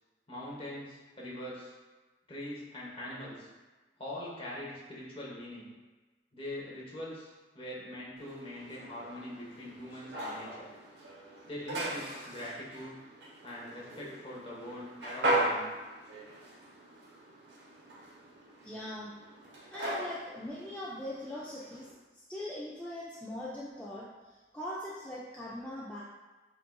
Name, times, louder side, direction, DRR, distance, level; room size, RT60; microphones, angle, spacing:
voice 1, 0.3-1.7 2.3-3.5 4.0-5.7 6.3-10.7 11.5-13.0 13.4-15.7, left 1 dB, 30° left, -5 dB, 1.0 m, -42 dB
sound 1, 8.2-21.9, right 1 dB, 75° right, 0.8 m, -38 dB
voice 2, 18.6-19.1 19.7-21.9 22.1-26.0, left 1 dB, 10° left, -8 dB, 0.4 m, -41 dB
7.4 x 2.5 x 2.3 m, 1.3 s
head